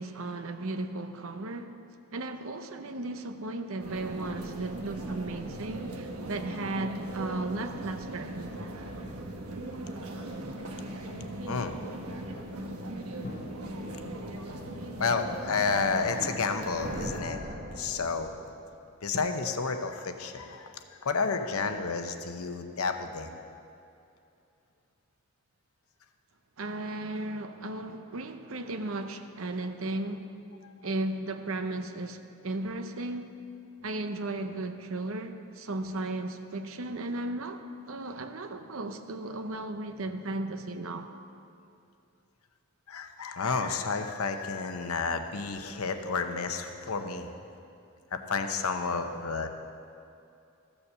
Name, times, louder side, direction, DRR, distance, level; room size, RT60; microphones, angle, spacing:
voice 1, 0.0-1.7 2.1-8.8 26.6-30.3 30.8-33.3 33.8-41.1, right 2 dB, 65° right, 8 dB, 0.7 m, -35 dB
sound 1, 3.8-17.2, right 1 dB, 85° right, 1.1 m, -39 dB
voice 2, 11.5-11.8 15.0-18.3 19.0-23.4 30.6-30.7 42.9-47.3 48.1-49.5, left 4 dB, 75° left, 7 dB, 0.8 m, -31 dB
sound 2, 13.2-16.6 17.3-17.4 19.1-19.2, left 2 dB, 40° left, 0.9 m, -50 dB
sound 3, 16.4-18.9, equal, 50° right, 1.2 m, -40 dB
14.0 x 7.1 x 6.8 m, 2.6 s
head